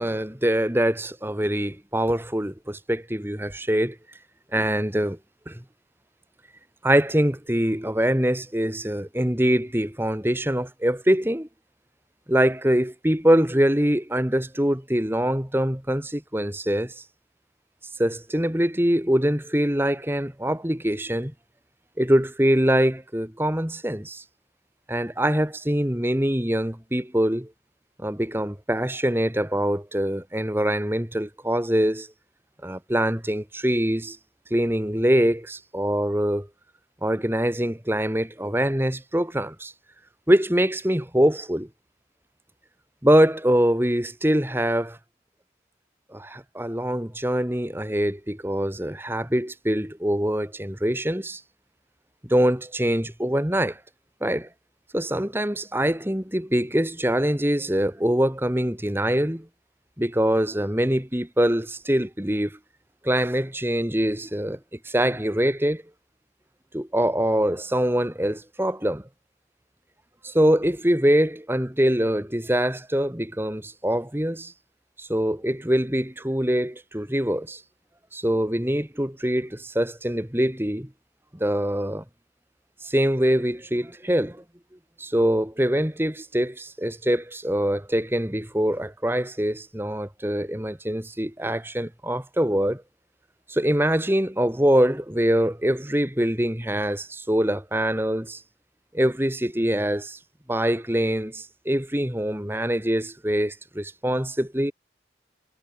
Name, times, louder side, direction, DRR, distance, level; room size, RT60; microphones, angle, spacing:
voice 1, 0.0-3.9 4.5-5.2 5.5-5.6 6.8-11.5 12.3-17.0 18.0-21.3 22.0-24.2 24.9-27.5 28.0-32.1 32.6-34.2 34.5-36.5 37.0-39.7 40.3-41.7 43.0-45.0 46.1-51.4 52.3-53.8 54.2-54.5 54.9-59.4 60.0-62.5 63.0-64.6 64.8-65.8 66.7-69.0 70.2-74.5 75.0-77.6 78.1-80.9 81.4-82.0 82.8-84.4 85.0-92.8 93.5-98.4 98.9-100.2 100.5-104.7, equal, 15° right, 1.8 m, -24 dB
head